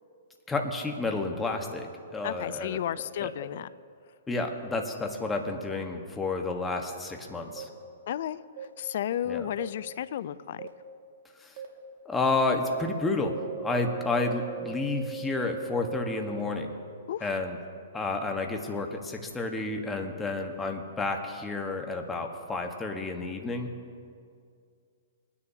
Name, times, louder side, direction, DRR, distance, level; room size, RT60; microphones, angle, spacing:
voice 1, 0.5-2.8 3.2-3.3 4.3-7.7 9.3-9.5 12.1-16.7 17.2-17.6 17.9-23.7, left 3 dB, 10° left, 3 dB, 1.3 m, -30 dB
voice 2, 2.2-3.7 8.1-8.4 8.8-10.7 17.1-17.3, left 10 dB, 60° left, 16 dB, 0.4 m, -33 dB
sound 1, 7.6-7.7 8.6-8.7 9.6-9.7 10.6-10.7 11.6-11.7 12.2-12.3 12.7-12.8 13.2-16.4, right 12 dB, 55° right, 1.9 m, -39 dB
23.5 x 9.9 x 2.8 m, 2.3 s
hypercardioid pair, 130°, 0 cm